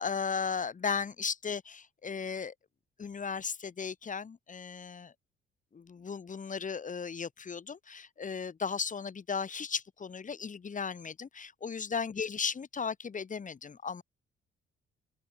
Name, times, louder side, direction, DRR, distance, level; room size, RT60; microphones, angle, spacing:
voice 1, 0.0-2.5 3.0-5.1 5.7-14.0, left 6 dB, 40° left, 6.6 m, -36 dB
cardioid pair, 90°, 20 cm